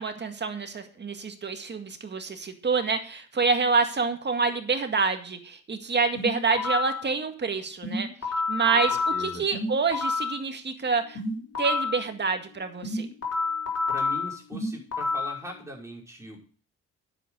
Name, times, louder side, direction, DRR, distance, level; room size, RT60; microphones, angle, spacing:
voice 1, 0.0-8.1 8.5-11.2 11.6-13.1, right 4 dB, 35° right, 6 dB, 2.0 m, -27 dB
sound 1, 6.2-7.0 7.8-10.4 11.2-12.0 12.8-15.4, left 3 dB, 55° left, 5.0 m, -29 dB
voice 2, 9.1-9.4 13.9-16.4, equal, 10° right, -2 dB, 5.6 m, -40 dB
9.9 x 8.1 x 6.4 m, 0.41 s
cardioid pair, 90°, 30 cm